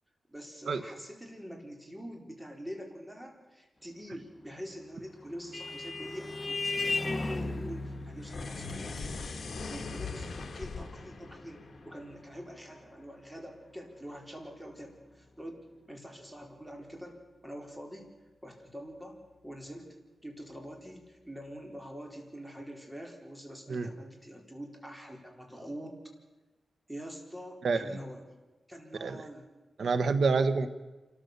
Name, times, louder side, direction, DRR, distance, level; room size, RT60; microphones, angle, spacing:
voice 1, 0.3-9.3 9.6-18.1 18.4-19.9 20.2-26.0 26.9-28.2 28.7-29.5, equal, 10° right, 2 dB, 4.4 m, -45 dB
Vehicle horn car horn honking, 4.9-13.9, left 2 dB, 35° left, 1.5 m, -38 dB
sound 1, 8.2-12.6, left 4 dB, 60° left, 2.0 m, -41 dB
voice 2, 29.8-30.7, right 4 dB, 75° right, 10 dB, 1.3 m, -27 dB
28.0 x 13.5 x 6.9 m, 1.1 s
wide cardioid pair, 85°, 0 cm